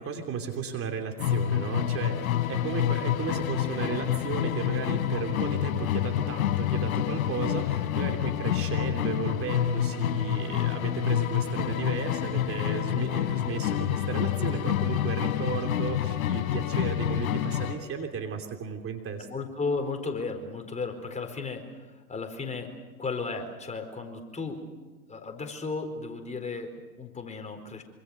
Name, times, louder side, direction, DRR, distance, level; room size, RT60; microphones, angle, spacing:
voice 1, 0.0-19.3, right 6 dB, 30° right, 4 dB, 3.1 m, -34 dB
Musical instrument, 1.2-17.9, left 11 dB, 65° left, 3.9 m, -28 dB
voice 2, 19.2-24.6 25.1-27.8, left 4 dB, 15° left, 4 dB, 4.5 m, -35 dB
26.5 x 26.0 x 6.7 m, 1.3 s
hypercardioid pair, 100°, 45 cm